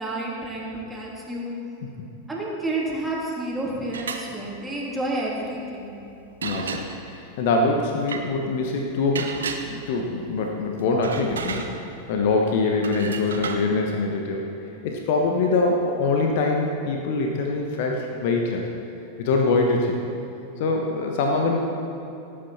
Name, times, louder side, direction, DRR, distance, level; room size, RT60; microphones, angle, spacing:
voice 1, 0.0-1.5 2.3-6.0, right 2 dB, 5° right, -5 dB, 3.1 m, -30 dB
sound 1, 3.8-4.3 6.4-7.1 8.0-8.3 9.1-10.0 10.8-12.1 12.8-13.7, right 5 dB, 65° right, 0.9 m, -33 dB
voice 2, 6.4-9.3 9.7-11.6 12.1-14.5 14.8-18.7 19.2-20.0 20.6-21.6, left 3 dB, 50° left, 1 dB, 1.3 m, -24 dB
18.0 x 8.8 x 4.3 m, 3.0 s
figure-of-eight pair, 90°, 0 cm